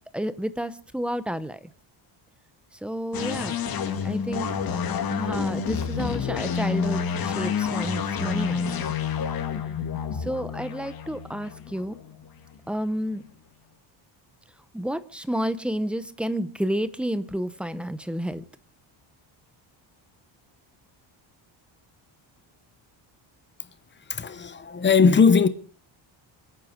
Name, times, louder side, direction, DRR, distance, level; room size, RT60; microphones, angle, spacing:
voice 1, 0.1-1.6 2.8-3.5 4.0-4.5 5.1-8.8 10.1-12.0 12.7-13.2 14.7-18.4, equal, ahead, 0.7 m, -30 dB
sound 1, 3.1-12.6, left 6 dB, 45° left, 2.4 m, -29 dB
voice 2, 24.1-25.5, left 5 dB, 25° left, 0.9 m, -19 dB
27.5 x 9.5 x 5.1 m
cardioid pair, 170°, 48 cm